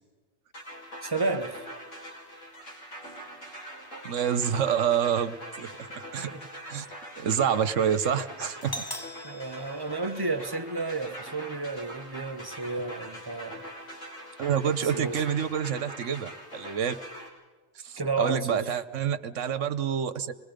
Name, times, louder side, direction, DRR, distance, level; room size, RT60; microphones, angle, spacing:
sound 1, 0.5-17.3, right 1 dB, 70° left, 5.1 m, -43 dB
voice 1, 1.0-1.6 6.3-6.4 9.2-13.6 14.8-15.2 18.0-18.7, right 3 dB, 20° right, 0.8 m, -32 dB
voice 2, 4.0-6.3 6.7-6.9 7.2-8.8 14.4-16.9 17.8-20.3, right 8 dB, 70° right, 1.3 m, -28 dB
Doorbell, 8.6-10.6, left 1 dB, 20° left, 1.0 m, -41 dB
26.0 x 20.5 x 5.2 m
omnidirectional pair, 1.3 m